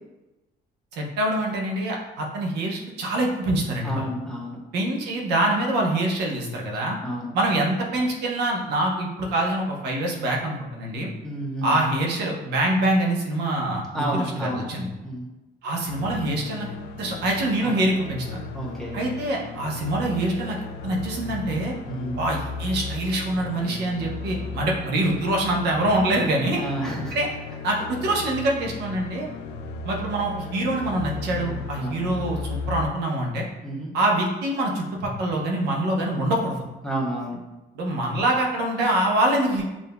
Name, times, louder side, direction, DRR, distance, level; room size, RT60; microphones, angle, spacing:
voice 1, 0.9-4.1 4.7-7.0 7.3-11.1 11.6-14.9 15.6-16.7 17.0-18.4 18.9-20.6 20.8-21.7 22.2-26.6 27.1-27.3 27.6-29.3 29.8-33.4 33.9-36.6 37.7-39.6, right 1 dB, 75° right, -1 dB, 0.9 m, -25 dB
voice 2, 3.8-4.6 7.0-7.4 11.2-11.8 13.9-14.7 15.0-15.3 17.6-17.8 18.5-19.0 21.9-22.3 26.6-27.2 31.7-31.9 33.6-33.9 36.8-37.4, right 1 dB, 5° left, -4 dB, 0.8 m, -30 dB
sound 1, 15.9-32.9, left 4 dB, 85° left, 0.4 m, -35 dB
7.0 x 2.6 x 2.2 m, 1.0 s
cardioid pair, 150°, 17 cm